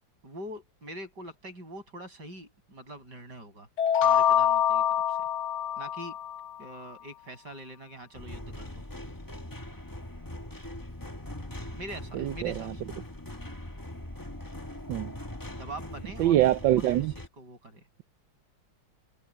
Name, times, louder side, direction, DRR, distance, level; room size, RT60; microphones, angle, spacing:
voice 1, 0.2-3.7 4.0-5.2 5.8-6.2 6.6-8.8 11.7-12.8 15.6-16.5 16.8-17.1 17.4-17.8, right 1 dB, 60° right, 7.2 m, -43 dB
sound 1, 3.8-6.5, left 9 dB, 50° left, 1.0 m, -25 dB
sound 2, 8.1-17.3, left 1 dB, 10° left, 1.4 m, -41 dB
voice 2, 12.1-12.7 14.9-15.1 16.2-17.1, right 14 dB, 80° right, 1.4 m, -24 dB
omnidirectional pair, 2.0 m